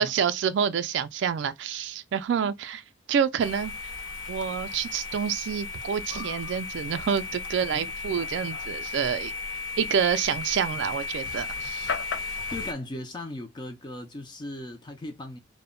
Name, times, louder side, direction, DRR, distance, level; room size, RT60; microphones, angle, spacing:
voice 1, 0.0-2.8 3.1-3.7 4.3-9.3 9.8-11.9, right 7 dB, 65° right, 0.3 m, -27 dB
sound 1, 3.4-12.7, left 4 dB, 80° left, 0.5 m, -35 dB
voice 2, 12.5-15.4, left 1 dB, 25° left, 0.3 m, -37 dB
2.1 x 2.1 x 3.6 m
head